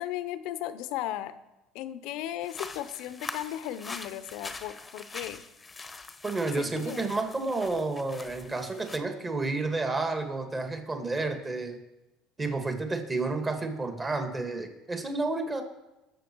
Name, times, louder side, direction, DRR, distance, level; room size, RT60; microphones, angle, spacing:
voice 1, 0.0-1.4 1.7-5.4 6.6-7.1, left 12 dB, 70° left, 13 dB, 0.8 m, -36 dB
sound 1, 2.4-9.0, left 3 dB, 20° left, 1.0 m, -43 dB
voice 2, 6.2-11.8 12.4-15.6, right 3 dB, 20° right, 5 dB, 2.0 m, -30 dB
19.0 x 7.0 x 4.6 m, 0.99 s
supercardioid pair, 95°, 0 cm